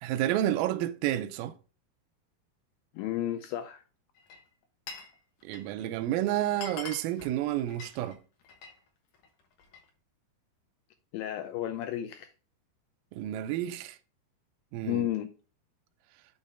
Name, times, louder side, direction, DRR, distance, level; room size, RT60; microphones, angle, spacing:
voice 1, 0.0-1.6 5.4-8.2 13.1-14.0 14.7-15.1, right 13 dB, 80° right, 2.1 m, -30 dB
voice 2, 2.9-3.8 11.1-12.3 14.8-15.3, left 12 dB, 85° left, 2.1 m, -32 dB
Glass, 4.2-5.2 5.4-5.8 6.2-6.3 6.5-8.8 9.1-9.9, left 5 dB, 65° left, 2.4 m, -45 dB
6.4 x 3.7 x 5.5 m
omnidirectional pair, 4.6 m